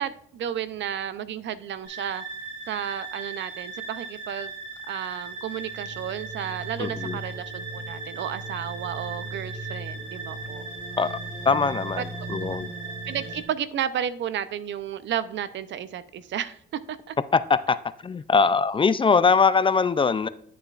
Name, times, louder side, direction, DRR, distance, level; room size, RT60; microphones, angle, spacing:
voice 1, 0.0-2.2 2.7-4.5 4.9-10.6 12.0-12.5 13.1-17.2, right 9 dB, 65° right, 0.6 m, -32 dB
sound 1, 1.9-13.4, right 3 dB, 5° right, 3.1 m, -36 dB
voice 2, 6.8-7.2 11.0-11.1 11.5-12.0 12.3-12.7 17.3-17.8 18.0-20.3, left 5 dB, 25° left, 0.4 m, -21 dB
11.0 x 6.6 x 2.4 m
cardioid pair, 90°, 20 cm